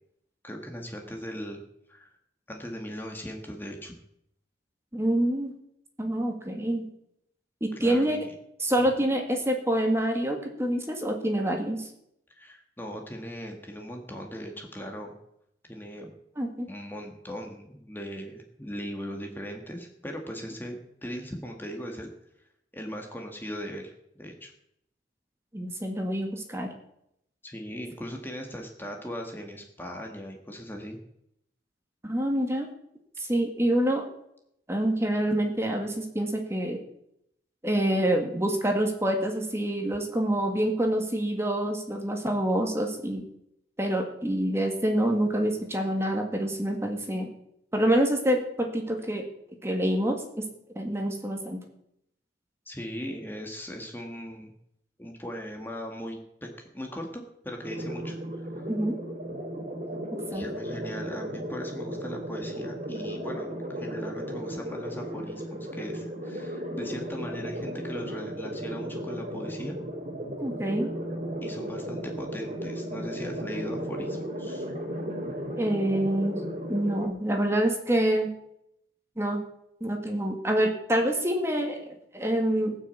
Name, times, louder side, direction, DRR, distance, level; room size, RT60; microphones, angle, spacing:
voice 1, 0.4-1.6 1.9-2.2 2.5-3.9 7.8-8.3 12.3-15.1 15.7-16.1 16.7-22.1 22.7-23.9 24.2-24.5 27.4-31.0 52.6-54.5 55.0-56.5 56.7-58.2 60.3-69.8 71.4-74.7, equal, 10° left, 2 dB, 1.7 m, -39 dB
voice 2, 4.9-5.5 6.0-6.9 7.6-8.2 8.6-11.9 16.4-16.7 25.5-26.7 32.0-32.7 33.2-34.0 34.7-36.8 37.6-43.2 43.8-47.3 47.7-49.3 49.6-50.5 50.8-51.6 58.7-59.0 60.3-60.4 70.4-70.9 75.6-76.4 76.7-78.3 79.2-79.4 79.8-82.8, right 1 dB, 15° right, 3 dB, 1.8 m, -26 dB
sound 1, 57.6-77.1, equal, 40° right, 2.8 m, -35 dB
19.0 x 6.4 x 8.5 m, 0.77 s
head